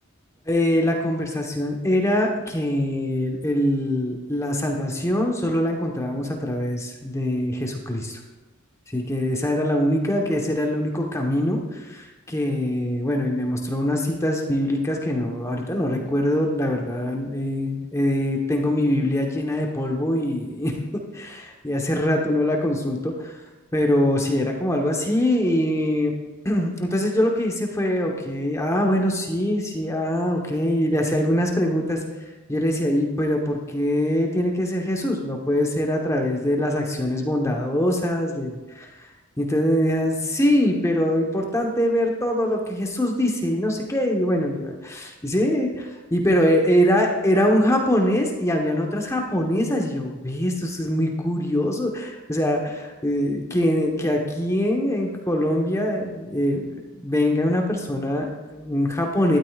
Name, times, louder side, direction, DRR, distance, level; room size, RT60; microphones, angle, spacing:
voice 1, 0.5-8.2 8.9-20.7 21.1-23.3 23.7-26.1 26.4-32.0 32.5-38.9 39.4-59.4, left 1 dB, 15° left, 1 dB, 1.1 m, -23 dB
12.5 x 12.0 x 2.4 m, 1.2 s
head